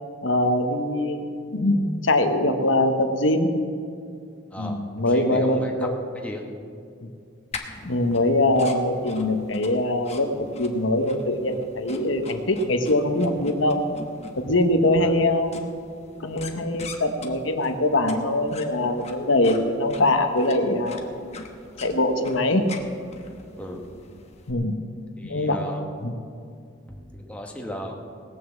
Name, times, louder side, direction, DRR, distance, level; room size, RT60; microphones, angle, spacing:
voice 1, 0.2-3.5 4.6-5.9 7.0-7.1 7.8-13.8 14.4-15.5 16.2-21.2 21.8-22.6 24.5-24.8 25.2-25.6 26.0-26.1, left 1 dB, 80° left, 6 dB, 1.1 m, -23 dB
voice 2, 4.5-5.9 6.1-6.4 14.5-14.6 15.0-15.2 23.6-23.8 25.2-26.0 26.9-27.9, equal, 5° left, 0 dB, 1.2 m, -36 dB
sound 1, 7.5-24.5, left 3 dB, 35° left, 1.1 m, -43 dB
18.5 x 6.4 x 7.3 m, 2.4 s
head